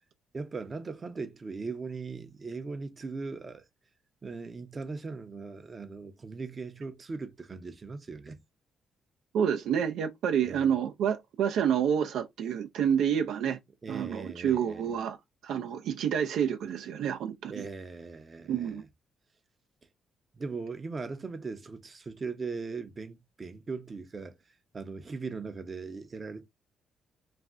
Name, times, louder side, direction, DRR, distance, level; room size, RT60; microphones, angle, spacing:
voice 1, 0.3-3.6 4.2-8.4 10.4-10.7 13.8-14.9 17.5-18.8 20.3-24.4 24.7-26.4, right 4 dB, 35° right, 0.6 m, -39 dB
voice 2, 9.3-13.6 13.9-15.2 15.4-17.7 18.5-18.8, right 8 dB, 80° right, 0.4 m, -28 dB
2.5 x 2.1 x 3.5 m
cardioid pair, 90°, 0 cm